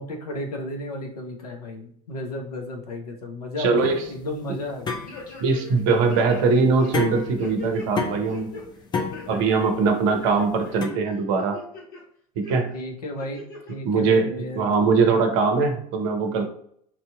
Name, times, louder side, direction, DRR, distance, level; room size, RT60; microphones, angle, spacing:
voice 1, 0.0-5.0 12.7-14.6, left 1 dB, 70° left, 2 dB, 0.8 m, -33 dB
voice 2, 3.6-4.0 5.4-8.5 9.3-11.6 12.4-12.7 13.8-16.4, right 4 dB, 50° right, 5 dB, 0.7 m, -21 dB
sound 1, 3.8-10.9, left 5 dB, 20° left, 0.5 m, -32 dB
sound 2, 5.1-5.8 6.1-7.9 8.3-8.6 9.1-9.7 10.1-10.9 11.4-12.0 12.4-12.6 13.2-13.7 14.1-14.2, left 2 dB, 45° left, 1.2 m, -39 dB
4.0 x 2.8 x 2.2 m, 0.67 s
figure-of-eight pair, 75°, 20 cm